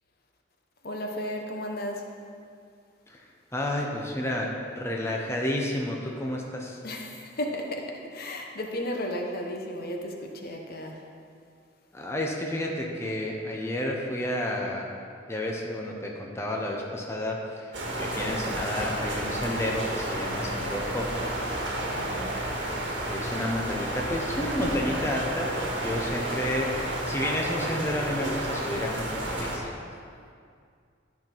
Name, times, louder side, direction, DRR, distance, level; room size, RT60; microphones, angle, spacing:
voice 1, 0.8-2.1 6.8-11.0 22.0-22.3, left 1 dB, 55° left, 2 dB, 1.0 m, -34 dB
voice 2, 3.5-6.8 11.9-14.9 15.3-21.6 23.0-29.7, left 1 dB, 15° left, -1 dB, 0.8 m, -31 dB
sound 1, 17.7-29.6, right 1 dB, 75° right, 1.7 m, -31 dB
12.5 x 5.9 x 4.5 m, 2.3 s
head